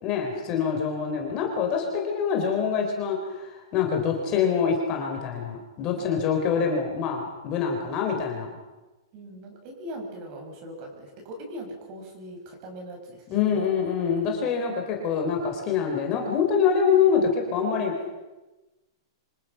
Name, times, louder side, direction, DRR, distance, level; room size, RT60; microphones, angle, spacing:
voice 1, 0.0-8.5 13.3-17.9, left 6 dB, 25° left, 2 dB, 4.1 m, -25 dB
voice 2, 5.9-6.3 9.1-13.6, equal, 30° right, 2 dB, 7.2 m, -41 dB
28.5 x 26.0 x 5.9 m, 1.1 s
supercardioid pair, 170°, 2 cm